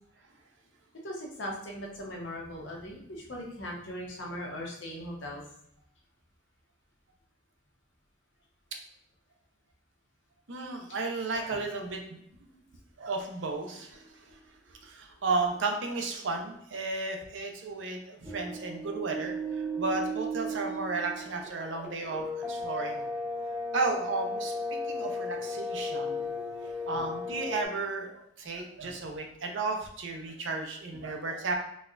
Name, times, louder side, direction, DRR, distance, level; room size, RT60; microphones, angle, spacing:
voice 1, 1.0-5.4 11.5-11.6 26.9-27.1 28.8-28.9 30.9-31.0, equal, 75° left, -2 dB, 0.8 m, -39 dB
voice 2, 10.5-12.2 13.0-14.4 14.7-23.1 23.7-26.3 26.9-31.5, right 3 dB, 70° right, 2 dB, 0.5 m, -34 dB
sound 1, 18.2-27.6, left 1 dB, 5° right, 0.4 m, -35 dB
4.1 x 2.2 x 2.4 m, 0.71 s
head